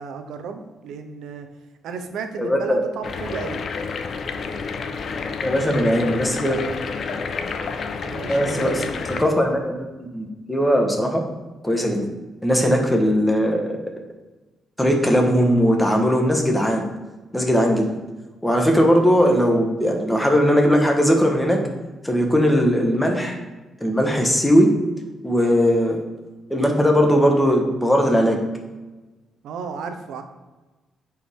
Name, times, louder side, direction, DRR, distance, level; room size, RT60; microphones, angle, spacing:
voice 1, 0.0-1.5 1.8-3.6 8.0-8.9 29.4-30.2, right 5 dB, 80° right, 7 dB, 0.8 m, -33 dB
voice 2, 2.4-2.8 5.4-6.6 8.3-8.8 9.2-9.7 10.0-11.2 11.6-12.1 12.4-13.7 14.8-16.8 17.3-17.9 18.4-21.6 22.0-23.4 23.8-24.7 25.2-26.0 26.5-28.4, equal, 5° left, 1 dB, 1.4 m, -19 dB
sound 1, 3.0-9.2, left 4 dB, 55° left, 0.6 m, -29 dB
8.6 x 4.6 x 3.7 m, 1.2 s
cardioid pair, 85°, 0 cm